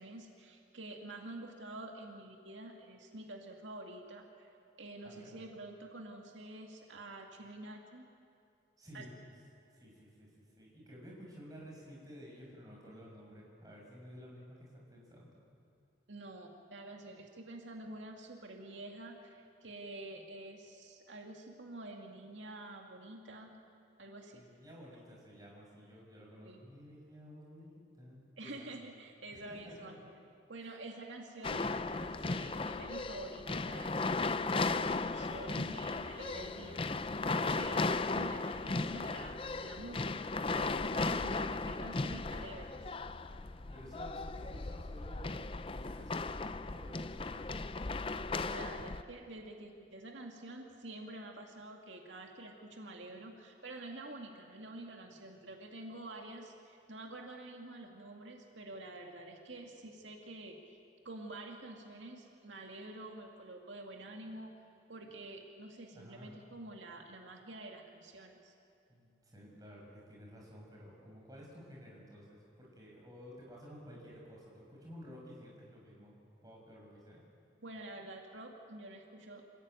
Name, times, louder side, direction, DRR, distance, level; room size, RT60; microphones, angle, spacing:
voice 1, 0.0-4.5 4.8-8.1 8.9-9.1 16.1-23.5 24.0-24.4 26.4-26.6 28.4-30.0 30.5-42.7 48.4-60.8 61.0-64.5 64.9-68.5 77.6-79.4, right 2 dB, 90° right, 2 dB, 2.2 m, -48 dB
voice 2, 5.0-5.4 8.8-9.1 9.7-15.4 24.3-28.7 29.3-30.0 30.6-30.8 43.7-47.6 65.0-65.2 65.9-66.3 68.9-77.3, equal, 20° right, -3 dB, 6.0 m, -53 dB
sound 1, 31.4-49.0, left 3 dB, 30° left, 0.5 m, -36 dB
27.5 x 15.5 x 9.1 m, 2.5 s
head